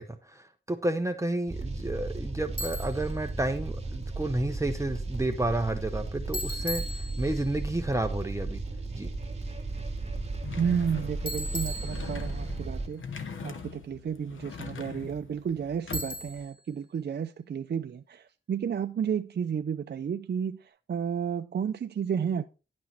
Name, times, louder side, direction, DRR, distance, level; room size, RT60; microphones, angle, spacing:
voice 1, 0.0-8.6 8.9-9.1, right 1 dB, 15° right, 0.7 m, -31 dB
sound 1, 1.5-12.9, right 2 dB, 30° right, 1.7 m, -35 dB
Bicycle, 2.6-3.1 6.3-7.6 11.3-12.5 15.9-16.6, equal, 25° left, 2.5 m, -37 dB
sound 2, 10.4-16.4, left 6 dB, 80° left, 1.0 m, -42 dB
voice 2, 10.6-13.0 13.4-20.6 20.9-22.5, right 7 dB, 55° right, 0.5 m, -32 dB
10.5 x 6.1 x 4.4 m
wide cardioid pair, 145°, 20 cm